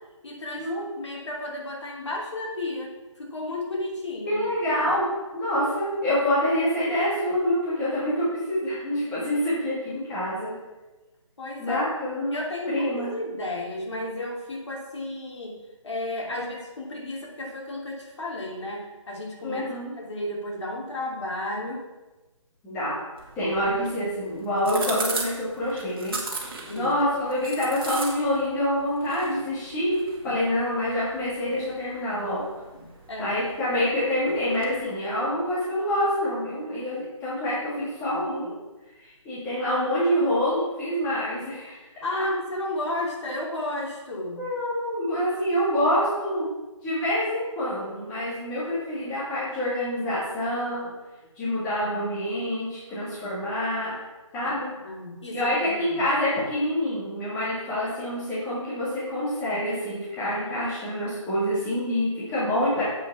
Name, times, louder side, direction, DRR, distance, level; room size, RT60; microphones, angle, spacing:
voice 1, 0.2-4.4 11.4-11.8 12.3-15.5 15.8-19.7 20.0-21.8 26.6-26.9 30.2-30.4 32.7-33.4 42.0-44.4 54.4-56.0, left 1 dB, 60° left, -1 dB, 2.8 m, -33 dB
voice 2, 4.3-5.0 5.3-10.5 11.6-12.3 12.7-13.1 16.3-16.5 19.4-19.9 22.6-23.0 23.4-26.2 26.7-32.4 33.2-38.5 39.0-41.8 44.1-46.5 46.8-50.9 51.4-53.9 54.3-54.7 55.3-62.8, left 1 dB, 10° left, -9 dB, 1.9 m, -26 dB
sound 1, 23.2-34.8, right 3 dB, 45° right, 1.9 m, -38 dB
7.9 x 6.4 x 5.8 m, 1.1 s
hypercardioid pair, 170°, 17 cm